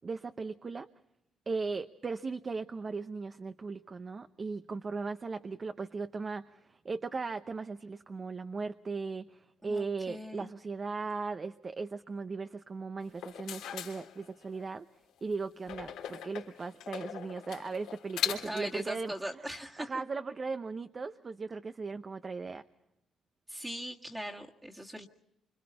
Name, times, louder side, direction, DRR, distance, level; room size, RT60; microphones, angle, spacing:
voice 1, 0.0-0.9 1.5-14.9 15.2-19.1 19.8-22.6, right 4 dB, 35° right, 9 dB, 0.8 m, -37 dB
voice 2, 9.6-10.5 18.4-19.9 23.5-25.1, right 1 dB, 10° right, -1 dB, 1.8 m, -40 dB
sound 1, 13.1-14.7 15.7-18.8, left 10 dB, 90° left, 3.2 m, -39 dB
28.0 x 26.0 x 4.3 m, 0.82 s
cardioid pair, 90°, 0 cm